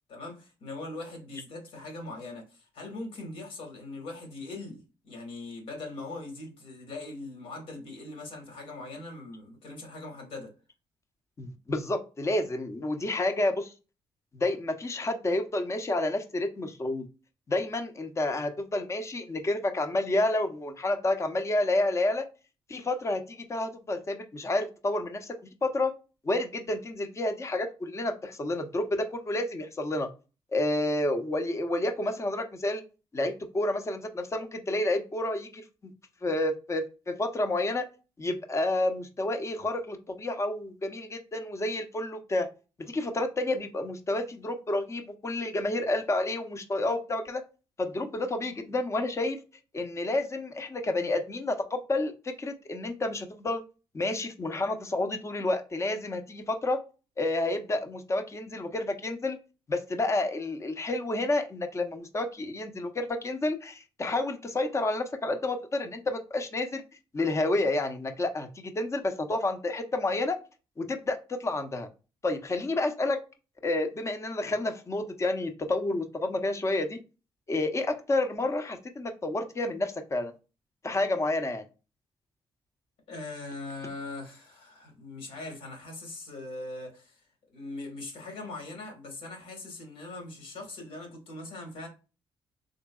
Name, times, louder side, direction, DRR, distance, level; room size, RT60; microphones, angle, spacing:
voice 1, 0.1-10.5 83.1-87.2 87.5-91.9, left 2 dB, 75° left, 1.8 m, -41 dB
voice 2, 11.4-13.7 14.3-17.0 17.5-22.2 22.7-25.9 26.2-30.1 30.5-32.8 33.1-35.6 36.2-37.8 38.2-42.5 42.9-47.4 47.8-49.4 49.7-52.1 52.4-53.6 53.9-56.8 57.2-59.4 59.7-66.8 67.1-70.4 70.8-71.9 72.2-73.2 73.6-77.0 77.5-80.3 80.8-81.6, left 2 dB, 30° left, 0.8 m, -30 dB
3.8 x 3.2 x 2.3 m
cardioid pair, 80°, 10 cm